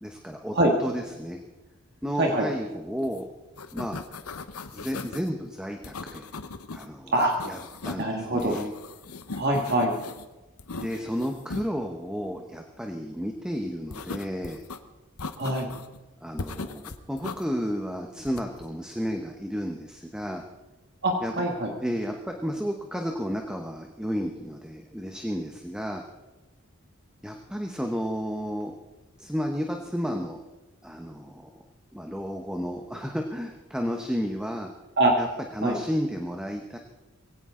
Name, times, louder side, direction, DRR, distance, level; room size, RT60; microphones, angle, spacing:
voice 1, 0.0-1.4 2.0-3.3 3.7-4.0 4.7-6.3 6.7-7.1 7.4-8.7 10.7-14.6 16.2-20.4 21.2-21.3 21.8-26.0 27.2-28.7 29.2-30.4 30.8-31.5 31.9-34.7 35.2-35.3 35.5-36.8, equal, 5° right, 3 dB, 1.0 m, -32 dB
sound 1, 3.0-3.2 3.5-5.3 5.8-6.9 7.2-8.1 8.4-10.3 10.6-11.7 13.9-14.8 15.2-16.0 16.4-17.4 18.2-18.7, left 3 dB, 80° left, 1.0 m, -38 dB
voice 2, 8.0-8.6 9.4-9.9 15.4-15.7 21.0-21.7 35.0-35.1 35.6-35.8, right 1 dB, 50° right, 0 dB, 1.9 m, -24 dB
22.0 x 17.0 x 3.8 m, 1.1 s
head